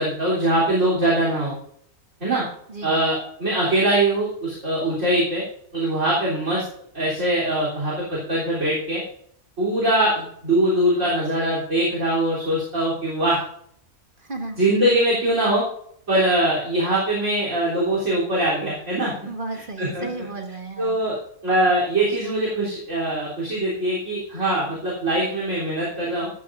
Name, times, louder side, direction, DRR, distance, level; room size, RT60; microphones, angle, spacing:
voice 1, 0.0-1.5 2.2-2.5 2.8-5.4 5.7-6.6 6.9-9.0 9.6-13.4 14.6-15.6 16.1-19.2 19.8-20.1 20.8-21.1 21.4-26.3, right 1 dB, 50° right, -5 dB, 3.9 m, -22 dB
voice 2, 2.7-3.0 14.2-14.6 19.3-21.0, right 3 dB, 35° right, 3 dB, 1.6 m, -34 dB
15.0 x 13.0 x 2.6 m, 0.67 s
omnidirectional pair, 1.6 m